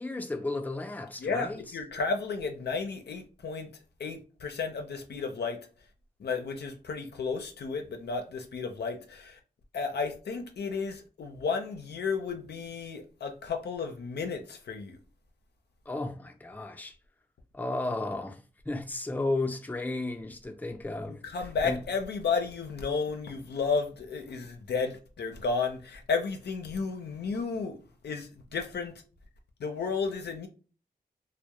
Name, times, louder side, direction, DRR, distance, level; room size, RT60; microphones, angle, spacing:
voice 1, 0.0-1.8 15.9-17.0 17.5-21.2 21.6-21.8, left 2 dB, 10° left, 0.4 m, -34 dB
voice 2, 1.2-3.7 4.0-5.7 6.2-9.4 9.7-15.0 21.1-29.0 29.6-30.5, left 5 dB, 90° left, 0.4 m, -33 dB
2.2 x 2.0 x 2.9 m
cardioid pair, 40°, 17 cm